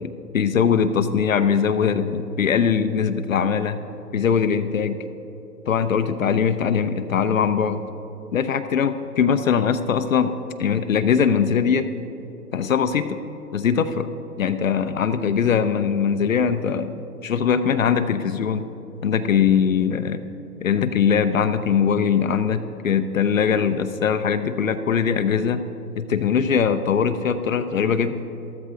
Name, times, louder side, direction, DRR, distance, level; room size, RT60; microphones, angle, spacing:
voice 1, 0.0-3.8 4.1-5.0 5.7-7.8 8.3-10.3 10.6-11.9 12.5-13.2 13.5-14.1 14.4-16.9 17.2-18.7 19.0-20.2 20.6-25.6 26.0-28.2, left 7 dB, 55° left, 10 dB, 0.6 m, -21 dB
13.5 x 13.5 x 3.8 m, 3.0 s
hypercardioid pair, 150°, 48 cm